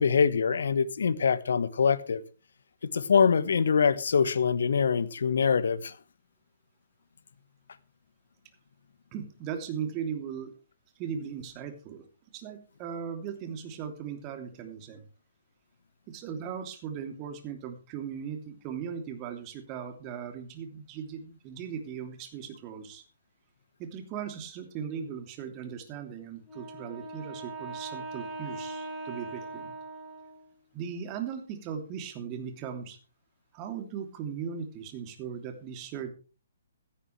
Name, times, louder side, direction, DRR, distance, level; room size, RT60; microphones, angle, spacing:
voice 1, 0.0-2.2 2.8-5.9, left 6 dB, 65° left, 1.3 m, -24 dB
voice 2, 9.1-10.5 11.0-12.0 12.3-15.0 16.1-23.0 23.8-29.7 30.7-33.0 33.5-36.1, right 7 dB, 30° right, 2.9 m, -38 dB
Wind instrument woodwind instrument, 26.4-30.7, right 2 dB, 10° right, 4.2 m, -40 dB
16.0 x 13.5 x 3.3 m
figure-of-eight pair, 130°, 0 cm